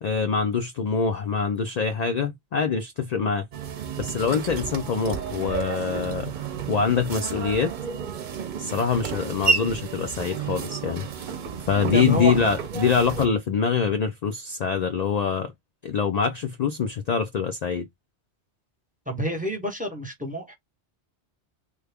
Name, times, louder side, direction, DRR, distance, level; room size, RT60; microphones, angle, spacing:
voice 1, 0.0-3.4 4.0-6.3 6.7-7.7 8.6-11.1 11.7-15.5 15.8-17.9, left 6 dB, 60° left, 0.4 m, -24 dB
sound 1, 3.5-13.3, right 6 dB, 50° right, 0.6 m, -31 dB
voice 2, 11.9-12.4 19.1-20.5, right 1 dB, 10° right, 0.9 m, -28 dB
3.3 x 2.3 x 3.4 m
omnidirectional pair, 1.2 m